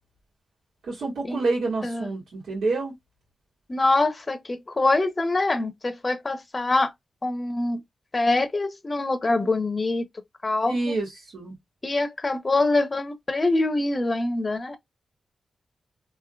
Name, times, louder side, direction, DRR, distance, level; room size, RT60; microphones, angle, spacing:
voice 1, 0.8-2.9 10.7-11.5, right 3 dB, 85° right, 1.7 m, -28 dB
voice 2, 3.7-6.9 7.2-7.8 8.1-10.1 10.4-10.9 11.8-14.8, left 2 dB, 30° left, 0.6 m, -24 dB
3.6 x 2.7 x 2.3 m
cardioid pair, 90°, 0 cm